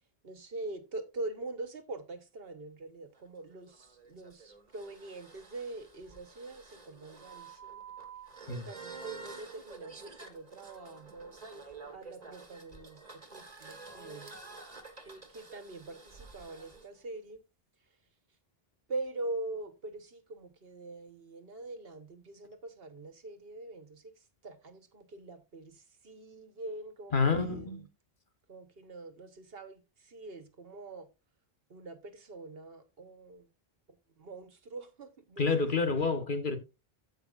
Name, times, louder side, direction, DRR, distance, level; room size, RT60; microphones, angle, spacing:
voice 1, 0.2-7.8 8.6-11.6 11.9-14.3 15.0-17.4 18.9-27.8 28.5-31.1 31.7-33.5 34.2-35.7, right 2 dB, 70° right, 1.5 m, -44 dB
sound 1, 3.1-16.9, right 4 dB, 40° right, 1.6 m, -50 dB
voice 2, 27.1-27.9 35.4-36.6, left 4 dB, 55° left, 1.5 m, -28 dB
15.5 x 5.4 x 2.5 m
omnidirectional pair, 1.0 m